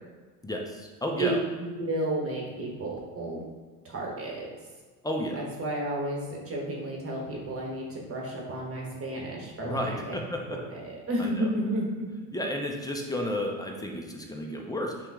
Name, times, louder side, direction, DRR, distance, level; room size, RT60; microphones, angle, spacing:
voice 1, 0.4-1.4 5.0-5.4 9.6-10.6 11.2-11.5 12.3-14.9, left 1 dB, 10° left, 1 dB, 0.5 m, -32 dB
voice 2, 1.2-3.4 3.8-4.5 5.3-10.2 10.5-11.8, right 1 dB, 30° right, -2 dB, 1.3 m, -32 dB
5.7 x 2.4 x 3.5 m, 1.4 s
hypercardioid pair, 70°, 48 cm